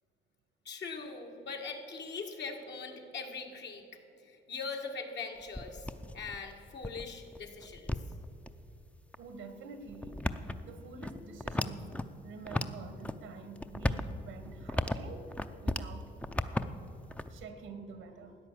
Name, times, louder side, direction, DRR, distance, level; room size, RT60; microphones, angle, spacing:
voice 1, 0.7-5.8 6.1-7.9, left 4 dB, 60° left, 2 dB, 2.0 m, -41 dB
sound 1, 5.4-8.5 9.1-9.2 9.9-12.1 12.4-13.2 13.5-15.9 16.2-17.5, left 1 dB, 5° left, 0.6 m, -35 dB
voice 2, 9.2-10.2 10.6-16.1 17.3-18.4, right 4 dB, 90° right, 8 dB, 1.5 m, -48 dB
13.5 x 9.6 x 7.5 m, 2.8 s
cardioid pair, 90°, 20 cm